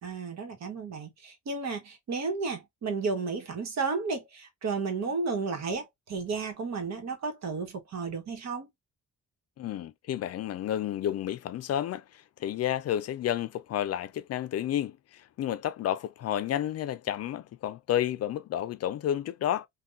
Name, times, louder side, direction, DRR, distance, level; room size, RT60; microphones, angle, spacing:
voice 1, 0.0-8.7, right 4 dB, 60° right, 1.2 m, -33 dB
voice 2, 9.6-19.7, left 11 dB, 55° left, 0.4 m, -31 dB
3.4 x 2.3 x 2.5 m
cardioid pair, 90°, 30 cm